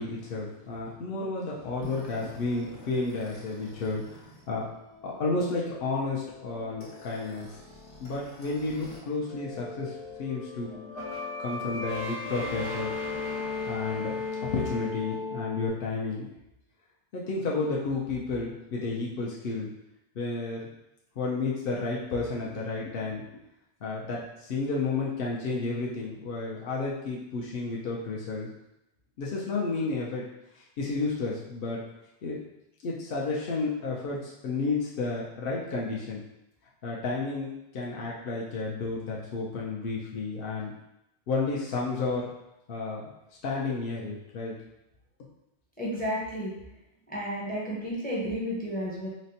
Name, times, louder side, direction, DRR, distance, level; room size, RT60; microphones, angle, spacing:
voice 1, 0.0-4.7 5.0-7.5 8.0-9.9 10.2-11.1 11.4-12.9 13.7-14.2 14.5-16.3 17.1-19.7 20.2-20.7 21.2-23.2 23.8-28.5 29.2-30.3 30.8-31.8 32.2-32.4 32.8-36.2 36.8-40.7 41.3-42.3 42.7-43.0 43.4-44.5, left 3 dB, 60° left, -4 dB, 0.7 m, -31 dB
sound 1, 1.8-9.0 9.3-15.7, left 4 dB, 85° left, 1.3 m, -38 dB
voice 2, 45.8-46.5 47.1-49.1, equal, 10° left, -4 dB, 0.5 m, -32 dB
4.1 x 2.1 x 2.7 m, 0.87 s
omnidirectional pair, 1.2 m